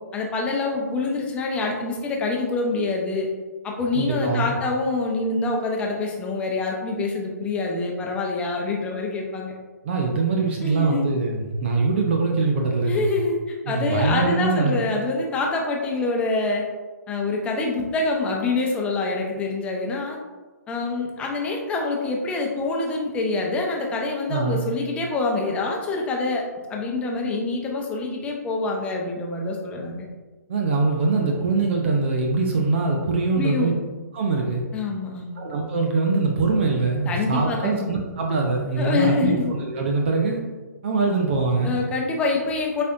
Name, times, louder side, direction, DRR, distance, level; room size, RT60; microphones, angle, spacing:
voice 1, 0.1-3.3 3.6-9.5 10.6-11.1 12.8-16.6 17.1-20.2 20.7-26.4 26.7-30.1 33.3-33.7 34.7-35.4 37.0-37.9 38.8-39.5 41.6-42.8, left 3 dB, 10° left, 0 dB, 0.9 m, -26 dB
voice 2, 3.9-4.6 9.8-13.1 13.6-14.8 24.3-24.7 30.5-33.7 34.1-34.6 35.4-40.4 40.8-41.8, right 3 dB, 40° right, 1 dB, 0.8 m, -23 dB
8.3 x 4.4 x 2.6 m, 1.3 s
figure-of-eight pair, 130°, 10 cm